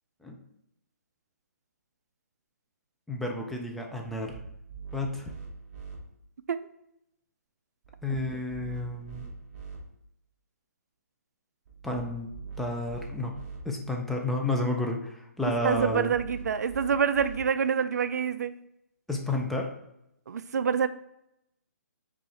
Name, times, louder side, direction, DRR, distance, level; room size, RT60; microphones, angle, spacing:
voice 1, 3.1-4.3 4.9-5.3 8.0-9.3 11.8-12.3 12.6-13.3 13.6-16.1 19.1-19.7, left 2 dB, ahead, 1 dB, 0.3 m, -31 dB
sound 1, 4.0-6.0 7.8-9.8 11.7-13.6 15.5-17.4, right 5 dB, 35° right, 1.3 m, -43 dB
voice 2, 15.4-18.6 20.3-20.9, right 7 dB, 75° right, 13 dB, 0.4 m, -27 dB
5.2 x 2.4 x 4.2 m, 0.80 s
hypercardioid pair, 160°, 9 cm